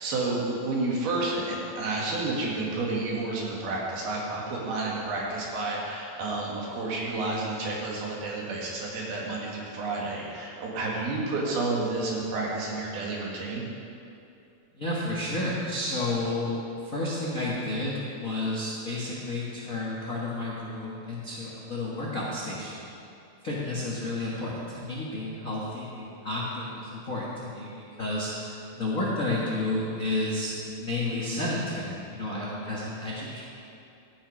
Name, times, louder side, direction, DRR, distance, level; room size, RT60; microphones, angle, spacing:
voice 1, 0.0-13.6, right 2 dB, 85° right, -3 dB, 3.9 m, -30 dB
voice 2, 14.7-16.5 16.8-22.8 23.4-30.5 30.8-33.4, left 2 dB, 85° left, -5 dB, 0.7 m, -31 dB
13.0 x 9.5 x 5.0 m, 2.7 s
omnidirectional pair, 4.3 m